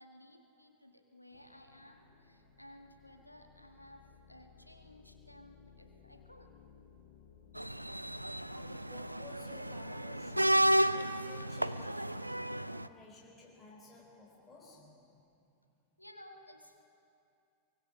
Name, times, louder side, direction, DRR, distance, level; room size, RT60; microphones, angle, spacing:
voice 1, 0.0-6.5 16.0-16.8, left 1 dB, 90° left, 4 dB, 1.8 m, -56 dB
sound 1, 1.3-10.6, left 5 dB, 65° left, 2.2 m, -60 dB
sound 2, 7.6-12.9, right 1 dB, 85° right, 0.5 m, -32 dB
voice 2, 8.5-15.3, left 2 dB, 20° left, -3 dB, 4.0 m, -55 dB
24.0 x 23.0 x 6.8 m, 2.6 s
figure-of-eight pair, 90°, 0 cm